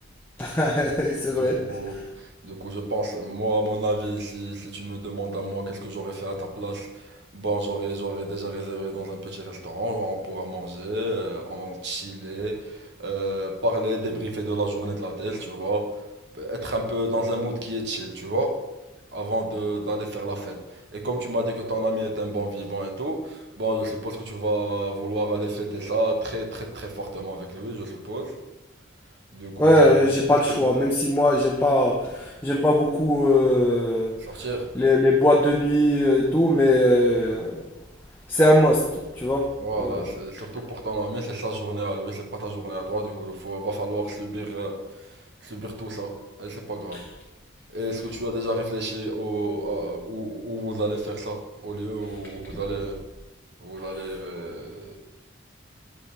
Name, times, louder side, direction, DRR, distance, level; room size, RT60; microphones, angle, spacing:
voice 1, 0.4-1.6 29.6-34.1 34.8-37.6 38.3-38.8 39.2-39.5 39.8-40.0, left 1 dB, 10° left, -2 dB, 0.6 m, -20 dB
voice 2, 1.4-16.0 16.3-18.6 19.1-28.3 29.3-29.8 30.5-30.7 34.2-34.7 39.6-45.1 45.4-47.0 47.7-53.0 53.6-55.0, right 1 dB, 55° right, 3 dB, 0.9 m, -30 dB
8.5 x 5.2 x 3.3 m, 1.0 s
head